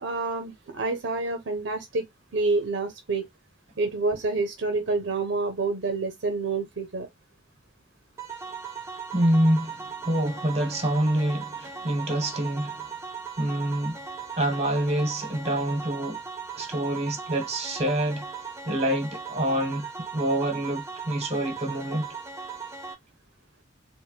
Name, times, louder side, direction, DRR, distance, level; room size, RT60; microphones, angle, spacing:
voice 1, 0.0-2.0 2.3-3.3 3.8-7.1, right 3 dB, 65° right, 0.7 m, -28 dB
sound 1, 8.2-22.9, right 6 dB, 15° right, 0.7 m, -38 dB
voice 2, 9.1-12.9 13.4-14.0 14.4-16.2 16.5-18.2 18.6-19.9 20.1-22.1, right 1 dB, 35° right, 1.2 m, -26 dB
4.3 x 2.2 x 2.2 m
head